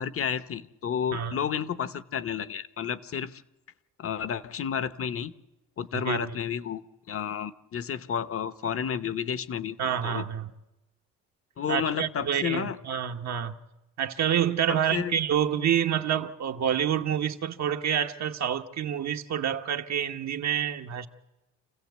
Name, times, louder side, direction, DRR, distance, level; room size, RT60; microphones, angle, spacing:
voice 1, 0.0-3.4 4.0-5.3 5.8-9.8 10.0-10.2 11.6-12.8 14.7-15.1, left 8 dB, 50° left, 1.0 m, -31 dB
voice 2, 5.9-6.3 9.8-10.5 11.7-13.5 14.0-21.1, right 9 dB, 65° right, 1.3 m, -28 dB
27.5 x 15.5 x 8.1 m
cardioid pair, 90°, 30 cm